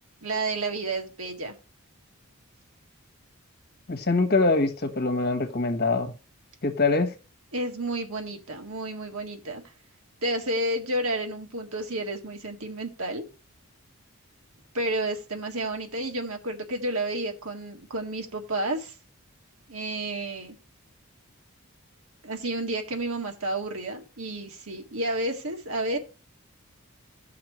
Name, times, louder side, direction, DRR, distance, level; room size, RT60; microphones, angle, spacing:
voice 1, 0.2-1.6 7.5-9.6 10.2-13.2 14.7-19.0 19.7-20.6 22.2-26.0, right 1 dB, 75° right, 1.8 m, -31 dB
voice 2, 3.9-6.1 6.6-7.1, left 3 dB, 45° left, 1.3 m, -24 dB
16.5 x 5.8 x 3.2 m
head